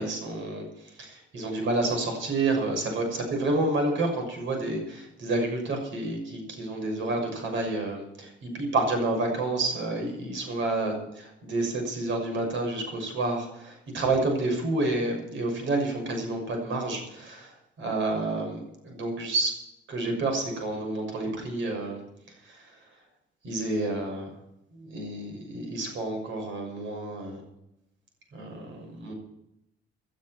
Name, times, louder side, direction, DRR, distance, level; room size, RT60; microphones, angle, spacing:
voice 1, 0.0-11.0 11.4-19.5 19.9-22.0 22.4-22.8 23.4-24.3 24.7-27.4 28.3-29.1, right 2 dB, 75° right, 3 dB, 6.4 m, -29 dB
18.5 x 12.0 x 4.6 m, 0.86 s
cardioid pair, 90°, 20 cm